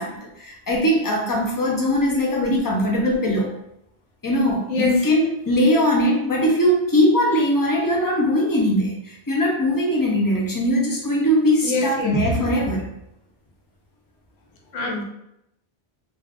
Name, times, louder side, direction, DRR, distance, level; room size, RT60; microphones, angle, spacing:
voice 1, 0.0-3.5 4.2-12.9, equal, 30° left, -2 dB, 0.4 m, -20 dB
voice 2, 4.7-5.1 5.6-5.8 11.6-12.1 14.7-15.0, left 3 dB, 75° left, 1 dB, 0.9 m, -25 dB
2.5 x 2.4 x 3.4 m, 0.80 s
omnidirectional pair, 1.1 m